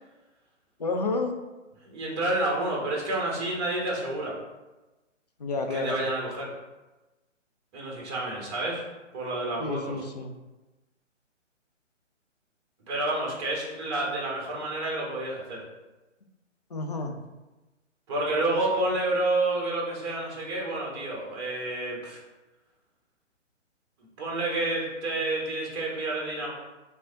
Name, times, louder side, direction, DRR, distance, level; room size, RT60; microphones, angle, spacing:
voice 1, 0.8-1.4 5.4-6.0 9.6-10.3 16.7-17.2, left 3 dB, 35° left, 4 dB, 0.4 m, -30 dB
voice 2, 1.8-4.3 5.7-6.5 7.7-8.8 9.1-9.9 12.9-15.6 18.1-22.2 24.2-26.5, right 2 dB, 20° right, -2 dB, 0.9 m, -29 dB
4.7 x 3.4 x 2.7 m, 1.1 s
figure-of-eight pair, 140°, 38 cm